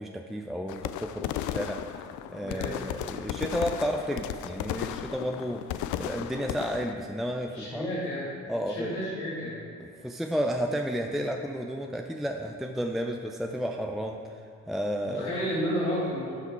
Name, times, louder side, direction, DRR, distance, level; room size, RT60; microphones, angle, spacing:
voice 1, 0.0-7.9 8.5-9.0 9.8-14.4 14.7-15.4, equal, ahead, 3 dB, 0.6 m, -32 dB
sound 1, 0.7-6.9, left 12 dB, 60° left, 0.5 m, -35 dB
voice 2, 2.4-2.7 7.5-8.2 8.7-9.6 15.1-16.4, equal, 90° left, -7 dB, 2.3 m, -31 dB
12.0 x 5.7 x 4.6 m, 2.5 s
hypercardioid pair, 45°, 35 cm